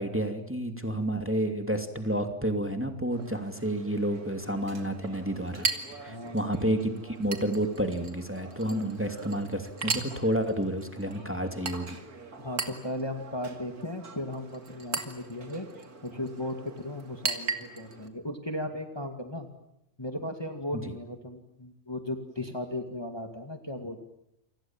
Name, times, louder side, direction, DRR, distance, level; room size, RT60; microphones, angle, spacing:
voice 1, 0.0-5.7 6.0-12.0, right 1 dB, 10° right, 6 dB, 2.6 m, -30 dB
Chink clink, 3.1-18.1, right 4 dB, 75° right, 2.9 m, -39 dB
voice 2, 6.1-6.5 12.4-15.7 16.0-19.5 20.0-24.0, left 1 dB, 15° left, 6 dB, 2.3 m, -36 dB
29.5 x 26.5 x 7.4 m, 0.82 s
omnidirectional pair, 1.6 m